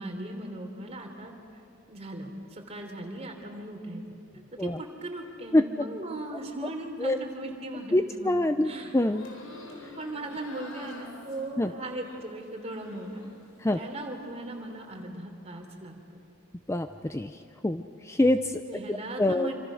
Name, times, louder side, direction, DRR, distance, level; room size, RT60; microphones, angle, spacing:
voice 1, 0.0-1.3 1.9-4.0 4.6-8.9 9.9-13.2 13.7-16.2 18.7-19.5, right 1 dB, 30° right, 3 dB, 3.3 m, -38 dB
voice 2, 7.9-9.3 11.6-11.7 13.6-13.8 16.7-17.3 17.6-18.6 18.9-19.5, left 1 dB, 15° left, 9 dB, 0.5 m, -25 dB
sound 1, 9.0-13.5 13.8-14.5, left 2 dB, 80° left, 4.4 m, -48 dB
27.0 x 26.0 x 6.4 m, 2.6 s
head